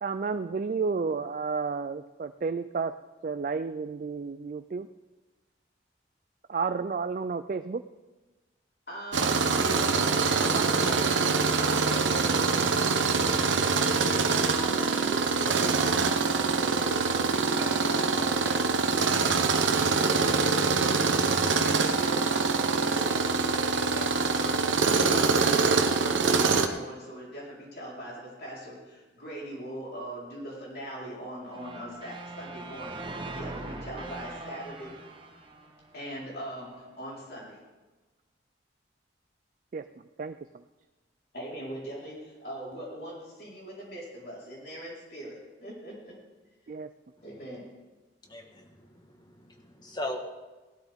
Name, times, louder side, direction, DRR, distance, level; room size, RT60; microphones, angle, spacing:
voice 1, 0.0-3.0 3.2-4.9 6.5-7.8 10.5-11.0 39.7-39.9 40.2-40.6 46.7-46.9, right 5 dB, 45° right, 10 dB, 0.3 m, -31 dB
voice 2, 8.9-12.8 13.7-19.4 19.6-20.9 21.6-35.0 35.9-37.6 41.3-46.1 47.2-47.7, right 1 dB, 55° left, -5 dB, 4.3 m, -40 dB
Tools, 9.1-26.7, right 4 dB, 85° right, 1.0 m, -25 dB
sound 1, 31.5-36.6, right 2 dB, 25° right, 1.1 m, -42 dB
voice 3, 48.2-50.2, left 1 dB, 25° left, 3 dB, 1.4 m, -39 dB
17.5 x 12.5 x 3.6 m, 1.2 s
head